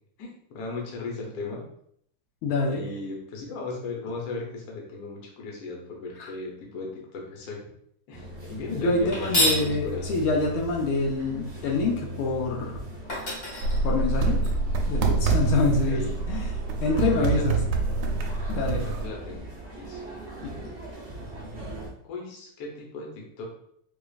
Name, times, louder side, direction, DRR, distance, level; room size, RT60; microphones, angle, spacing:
voice 1, 0.2-1.6 2.7-7.6 8.1-10.0 15.6-16.1 17.2-17.7 18.8-20.2 22.0-23.4, left 3 dB, 55° left, -2 dB, 1.2 m, -37 dB
voice 2, 2.4-2.8 6.2-6.3 8.7-12.8 13.8-14.4 14.9-16.5 16.8-17.6 18.5-18.9 20.4-20.5, left 3 dB, 80° left, 0 dB, 1.4 m, -26 dB
sound 1, 8.1-21.9, right 1 dB, 60° right, 0.6 m, -40 dB
sound 2, 9.1-9.7 12.6-12.7 13.1-14.5, equal, 35° left, 1.2 m, -27 dB
sound 3, 13.6-19.1, right 4 dB, 80° right, 1.4 m, -26 dB
4.8 x 2.4 x 2.4 m, 0.70 s
omnidirectional pair, 2.4 m